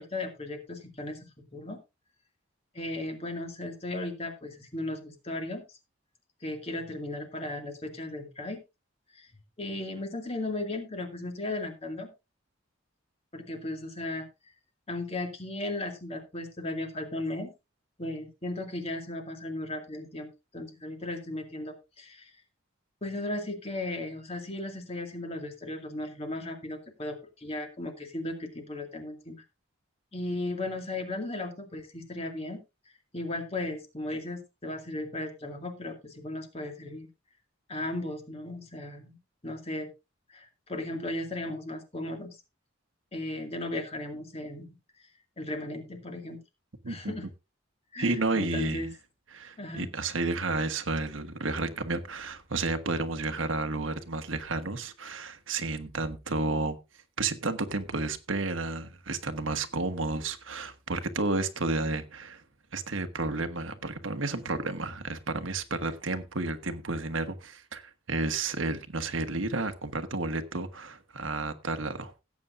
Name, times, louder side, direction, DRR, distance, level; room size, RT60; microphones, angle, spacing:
voice 1, 0.0-1.8 2.7-5.6 6.4-8.6 9.1-9.3 9.6-12.1 13.3-14.3 14.9-17.5 18.0-22.3 23.0-29.4 30.1-32.6 33.1-37.1 37.7-39.2 39.4-39.9 40.3-42.4 43.1-44.8 45.4-46.4 46.9-47.3 47.9-48.9 49.6-49.9, left 1 dB, 30° left, 2.3 m, -36 dB
voice 2, 48.0-48.9 49.3-56.8 57.2-62.4 62.7-72.1, right 3 dB, 80° right, 1.3 m, -31 dB
17.0 x 8.6 x 2.6 m
head